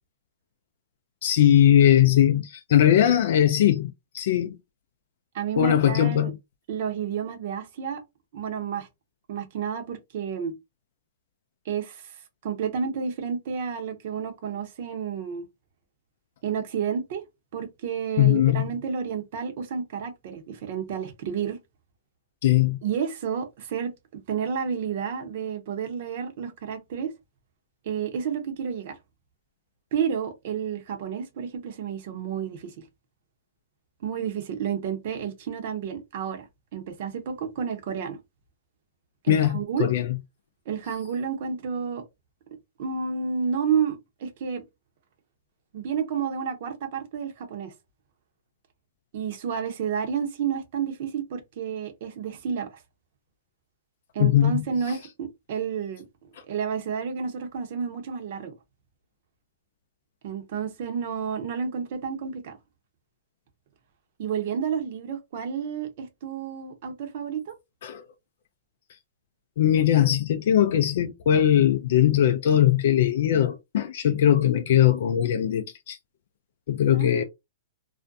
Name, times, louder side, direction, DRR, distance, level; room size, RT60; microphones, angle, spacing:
voice 1, 1.2-4.6 5.6-6.4 18.2-18.7 22.4-22.8 39.3-40.1 54.2-54.6 67.8-68.0 69.6-76.0 76.7-77.2, left 11 dB, 65° left, 0.3 m, -20 dB
voice 2, 5.3-6.3 6.7-8.0 8.3-8.9 9.3-10.5 11.7-12.2 12.4-15.5 16.4-17.2 17.5-21.6 22.8-27.1 27.8-29.0 29.9-32.8 34.0-36.5 36.7-38.2 39.2-39.9 40.7-42.0 42.8-44.6 45.7-47.7 49.1-52.7 54.1-56.1 56.5-58.5 60.2-62.6 64.2-67.5 76.9-77.2, right 7 dB, 55° right, 0.8 m, -30 dB
2.4 x 2.1 x 2.5 m
hypercardioid pair, 135°, 0 cm